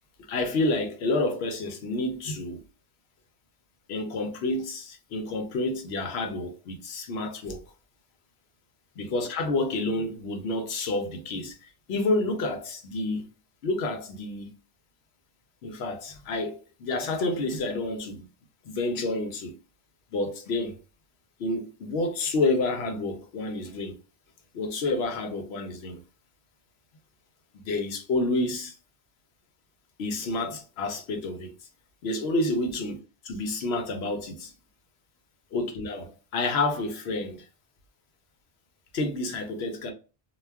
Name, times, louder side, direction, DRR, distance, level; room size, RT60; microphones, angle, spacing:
voice 1, 0.3-2.6 3.9-7.6 9.0-13.3 13.6-14.6 15.6-18.3 18.6-19.6 20.1-20.8 21.4-24.0 24.5-26.0 27.5-28.7 30.0-31.5 32.0-33.0 33.2-34.5 35.5-37.4 38.9-39.9, left 2 dB, 85° left, 0.9 m, -29 dB
2.3 x 2.2 x 3.3 m
omnidirectional pair, 1.0 m